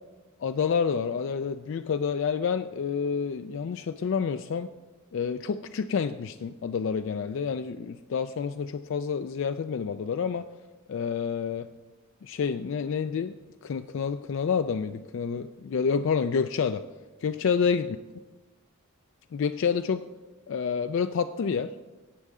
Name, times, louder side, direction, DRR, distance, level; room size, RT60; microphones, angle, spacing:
voice 1, 0.4-4.7 5.1-10.5 10.9-11.7 12.2-13.3 13.6-16.8 17.2-18.0 19.3-20.0 20.5-21.8, left 6 dB, 60° left, 9 dB, 0.3 m, -28 dB
17.5 x 6.5 x 3.6 m, 1.2 s
head